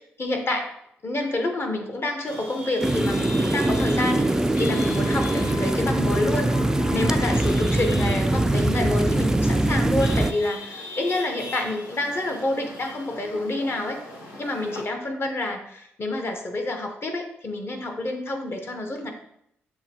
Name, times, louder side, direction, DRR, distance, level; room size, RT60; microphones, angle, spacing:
voice 1, 0.2-0.7 1.0-6.5 6.9-14.0 14.4-19.1, left 2 dB, 40° left, 4 dB, 1.0 m, -28 dB
Chatter / Vehicle horn car horn honking / Traffic noise roadway noise, 2.2-14.8, left 2 dB, 75° left, 0.8 m, -39 dB
sound 1, 2.8-10.3, right 1 dB, 10° right, 0.3 m, -22 dB
6.8 x 2.3 x 2.9 m, 0.73 s
hypercardioid pair, 40°, 6 cm